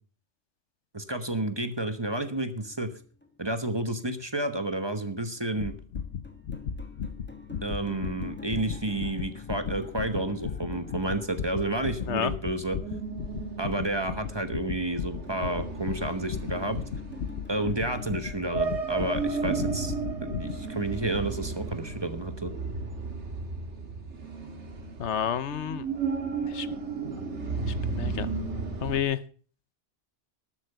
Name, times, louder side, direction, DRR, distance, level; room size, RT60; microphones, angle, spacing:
voice 1, 0.9-2.9 3.4-5.7 7.6-12.8 13.6-16.8 17.5-19.9 20.2-22.5, right 2 dB, 25° right, 9 dB, 1.2 m, -31 dB
sound 1, 1.4-21.0, left 4 dB, 10° left, 1.6 m, -48 dB
sound 2, 5.6-20.6, left 7 dB, 60° left, 1.0 m, -36 dB
sound 3, 11.5-29.0, right 4 dB, 90° right, 2.0 m, -34 dB
voice 2, 25.0-25.9 26.4-26.7 27.9-28.3 28.8-29.2, left 9 dB, 85° left, 15 dB, 1.1 m, -29 dB
12.5 x 8.4 x 6.7 m, 0.42 s
omnidirectional pair, 1.1 m